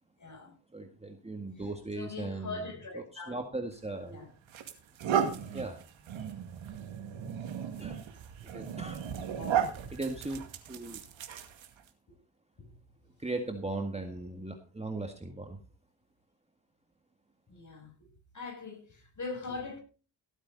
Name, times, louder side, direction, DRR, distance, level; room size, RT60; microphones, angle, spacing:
voice 1, 0.2-0.5 1.9-3.4 4.1-4.3 9.4-9.7 12.6-12.7 17.5-17.9 18.3-19.8, left 3 dB, 40° left, 6.4 m, -41 dB
voice 2, 0.7-4.2 5.5-5.8 7.8-8.1 8.4-9.1 9.4-9.5 9.9-11.0 13.2-15.6, right 2 dB, 15° right, 1.9 m, -38 dB
sound 1, 3.7-3.9 4.5-11.9, right 8 dB, 75° right, 2.2 m, -35 dB
17.0 x 9.0 x 4.0 m
cardioid pair, 85°, 46 cm